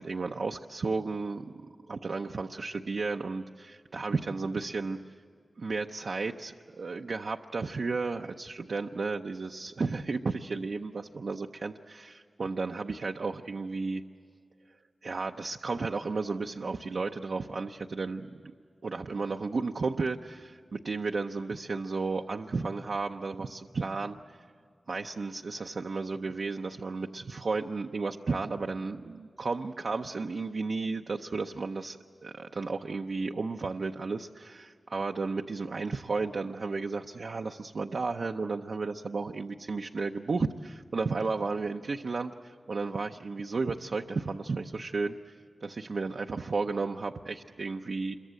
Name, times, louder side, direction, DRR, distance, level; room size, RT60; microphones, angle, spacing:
voice 1, 0.0-1.6 1.9-5.0 5.6-14.0 15.0-18.5 18.8-24.4 24.9-48.2, right 4 dB, 70° right, 3 dB, 0.7 m, -33 dB
27.5 x 23.0 x 7.7 m, 2.2 s
wide cardioid pair, 90°, 0 cm